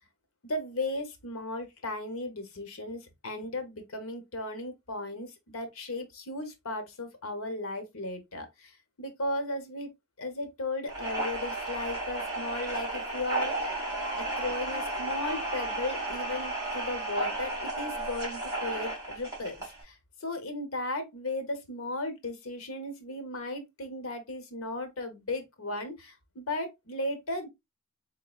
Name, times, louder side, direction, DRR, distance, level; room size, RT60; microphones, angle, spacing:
voice 1, 0.4-9.9 10.2-13.8 14.2-27.5, left 2 dB, 75° left, 0.9 m, -36 dB
sound 1, 10.9-19.8, right 2 dB, 15° right, 2.1 m, -33 dB
3.7 x 3.7 x 2.3 m
head